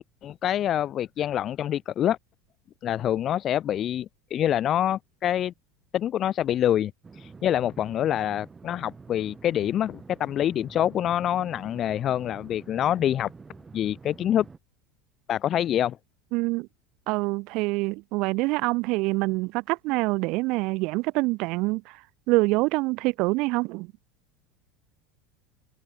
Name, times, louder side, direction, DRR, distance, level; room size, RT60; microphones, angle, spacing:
voice 1, 0.0-2.2 2.8-5.5 5.9-6.9 7.2-13.3 13.7-14.5 15.3-16.0, left 11 dB, 45° left, 0.4 m, -26 dB
sound 1, 7.0-14.6, right 4 dB, 20° right, 3.5 m, -48 dB
voice 2, 16.3-16.7 17.1-23.9, right 24 dB, 60° right, 1.4 m, -26 dB
open air
hypercardioid pair, 85°, 0 cm